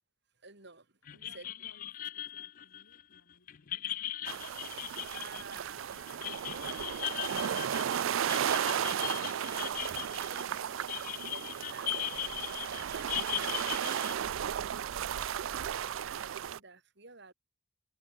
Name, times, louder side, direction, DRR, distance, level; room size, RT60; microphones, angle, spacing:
voice 1, 0.4-1.5 5.0-12.4 14.0-17.3, right 3 dB, 55° right, 3.5 m, -53 dB
voice 2, 1.1-4.2, left 2 dB, 85° left, 2.7 m, -65 dB
sound 1, 1.1-14.1, left 11 dB, 40° left, 0.4 m, -39 dB
sound 2, 4.3-16.6, right 9 dB, 75° right, 0.4 m, -34 dB
head